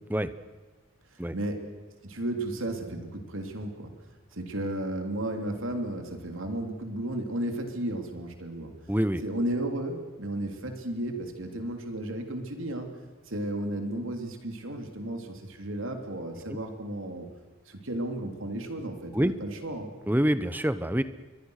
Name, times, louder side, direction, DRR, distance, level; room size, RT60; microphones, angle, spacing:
voice 1, 1.1-1.7 2.0-3.9 4.3-8.7 9.2-13.0 13.3-17.3 17.7-19.9, right 1 dB, 75° right, 5 dB, 3.3 m, -34 dB
voice 2, 8.9-9.2 19.1-19.3 20.1-21.0, equal, 10° right, 13 dB, 0.8 m, -25 dB
29.0 x 22.5 x 6.6 m, 1.3 s
head